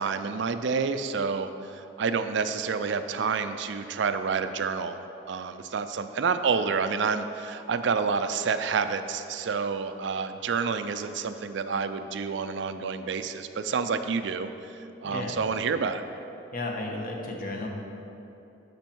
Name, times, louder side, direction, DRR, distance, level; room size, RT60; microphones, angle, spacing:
voice 1, 0.0-16.0, right 5 dB, 65° right, 10 dB, 0.4 m, -29 dB
voice 2, 15.0-15.4 16.5-17.7, left 2 dB, 45° left, 0 dB, 1.1 m, -33 dB
13.0 x 5.2 x 4.6 m, 2.9 s
head